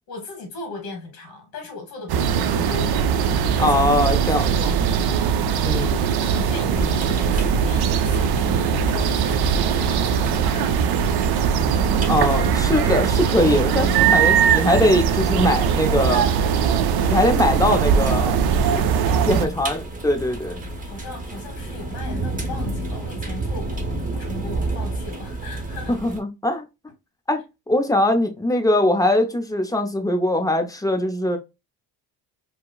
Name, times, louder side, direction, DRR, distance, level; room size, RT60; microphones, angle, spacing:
voice 1, 0.1-3.0 3.5-4.7 6.2-10.8 14.0-14.2 19.0-19.6 20.8-26.0, left 2 dB, 55° left, 1.1 m, -37 dB
sound 1, 2.1-19.5, right 7 dB, 60° right, 0.5 m, -20 dB
voice 2, 3.6-4.5 5.6-6.1 12.1-16.3 17.1-18.4 18.7-18.8 19.3-20.6 25.9-26.6 27.3-27.4 27.7-31.4, left 1 dB, 10° left, 0.4 m, -21 dB
sound 2, 6.7-26.2, right 2 dB, 20° right, 0.8 m, -31 dB
4.7 x 2.0 x 2.3 m
cardioid pair, 115°, 44 cm